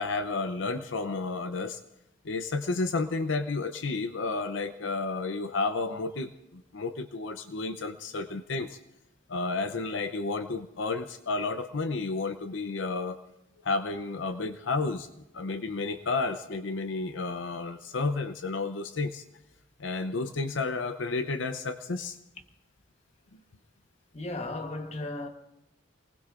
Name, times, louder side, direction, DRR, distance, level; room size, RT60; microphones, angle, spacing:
voice 1, 0.0-1.8 2.2-8.8 9.3-13.2 13.6-15.1 15.3-19.2 19.8-22.2, left 3 dB, 70° left, 0.7 m, -31 dB
voice 2, 24.1-25.3, left 2 dB, 35° left, 1.2 m, -35 dB
28.0 x 19.5 x 2.5 m
head